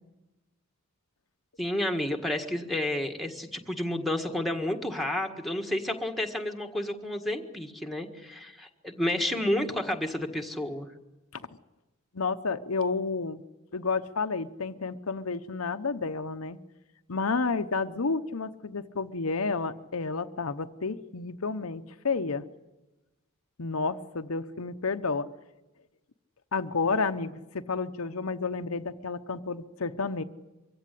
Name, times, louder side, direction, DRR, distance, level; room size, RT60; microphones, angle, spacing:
voice 1, 1.6-10.9, left 1 dB, ahead, 3 dB, 1.7 m, -30 dB
voice 2, 12.1-13.4 13.7-16.6 17.1-22.4 23.6-25.3 26.5-30.2, left 4 dB, 80° left, 8 dB, 0.9 m, -30 dB
24.0 x 16.0 x 10.0 m, 1.1 s
head